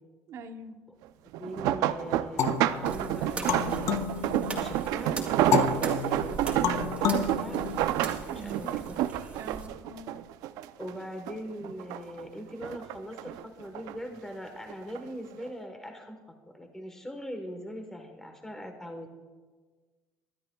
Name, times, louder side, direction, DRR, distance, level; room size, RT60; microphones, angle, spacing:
voice 1, 0.3-0.8 8.2-8.8 9.4-10.2, right 3 dB, 55° right, 7 dB, 0.9 m, -43 dB
sound 1, 1.3-10.9 11.3-12.2 12.6-14.0 14.7-15.0 15.4-15.5, right 12 dB, 85° right, 0.5 m, -29 dB
voice 2, 1.4-9.0 10.8-19.1, equal, 5° left, 4 dB, 1.1 m, -41 dB
sound 2, 2.4-4.9 5.5-8.3, left 8 dB, 50° left, 0.7 m, -31 dB
sound 3, 2.8-9.7, right 3 dB, 20° right, 2.1 m, -41 dB
23.5 x 12.5 x 2.3 m, 1.4 s
cardioid pair, 145°, 6 cm